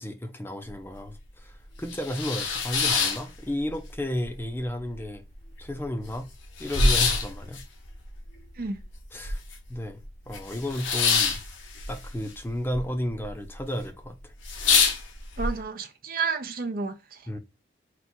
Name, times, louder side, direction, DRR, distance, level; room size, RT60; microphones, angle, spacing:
voice 1, 0.0-5.2 5.6-6.3 6.6-7.6 9.1-9.4 9.7-10.0 10.3-11.4 11.9-14.3 17.3-17.4, left 1 dB, 10° left, 0.5 m, -33 dB
sound 1, 0.7-0.8 1.2-1.3 1.7-3.9 4.2-5.0 5.3-5.4 5.6-9.7 10.0-12.8 13.1-13.6 14.0-14.1 14.4-15.5, left 4 dB, 90° left, 0.9 m, -26 dB
voice 2, 15.4-17.3, right 4 dB, 50° right, 0.6 m, -31 dB
4.1 x 2.3 x 4.3 m
head